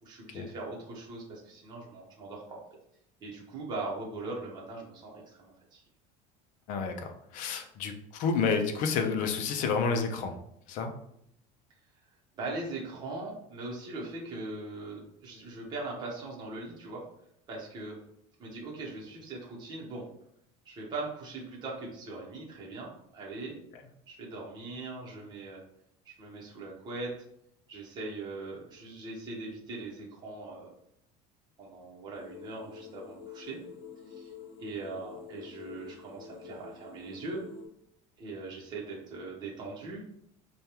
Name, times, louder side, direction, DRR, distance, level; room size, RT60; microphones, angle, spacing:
voice 1, 0.0-2.6 3.2-5.8 12.4-17.1 17.5-18.0 18.4-20.1 20.7-23.6 24.1-25.6 26.0-27.1 27.7-30.7 31.6-33.6 34.1-34.3 34.6-37.5 38.2-40.0, right 2 dB, 25° right, -4 dB, 0.8 m, -40 dB
voice 2, 6.7-10.3 10.7-10.9, left 5 dB, 50° left, 6 dB, 0.6 m, -30 dB
sound 1, 32.1-37.7, left 6 dB, 85° left, 0.9 m, -47 dB
5.0 x 2.3 x 2.9 m, 0.73 s
cardioid pair, 160°, 17 cm